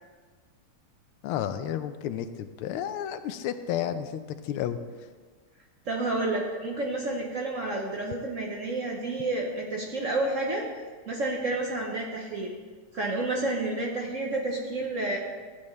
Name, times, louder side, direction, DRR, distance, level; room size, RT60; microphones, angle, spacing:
voice 1, 1.2-4.8, left 10 dB, 85° left, 10 dB, 1.5 m, -32 dB
voice 2, 5.8-10.7 11.1-12.5 12.9-15.2, right 2 dB, 50° right, 0 dB, 0.9 m, -30 dB
13.0 x 8.6 x 3.2 m, 1.5 s
omnidirectional pair, 2.3 m